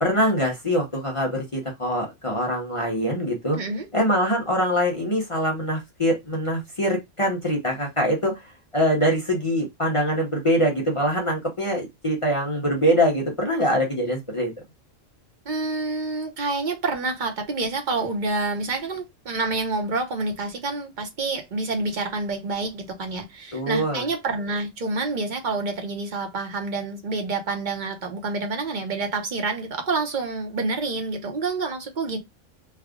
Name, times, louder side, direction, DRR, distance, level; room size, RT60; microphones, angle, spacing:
voice 1, 0.0-3.6 3.9-14.5 23.5-24.0, equal, 30° left, 0.8 m, -23 dB
voice 2, 3.5-3.9 15.4-32.2, right 3 dB, 40° right, 0.9 m, -28 dB
3.4 x 2.3 x 3.6 m
omnidirectional pair, 1.3 m